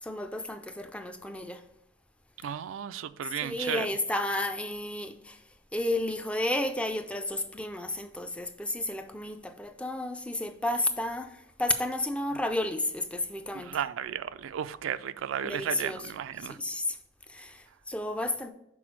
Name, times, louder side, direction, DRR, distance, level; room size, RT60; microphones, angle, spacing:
voice 1, 0.0-1.6 3.4-5.4 5.7-13.8 15.4-16.0 16.5-17.0 17.3-18.5, left 1 dB, 5° left, 0.4 m, -32 dB
voice 2, 2.4-3.9 13.5-16.6, right 9 dB, 75° right, 0.3 m, -34 dB
6.1 x 4.2 x 4.6 m
head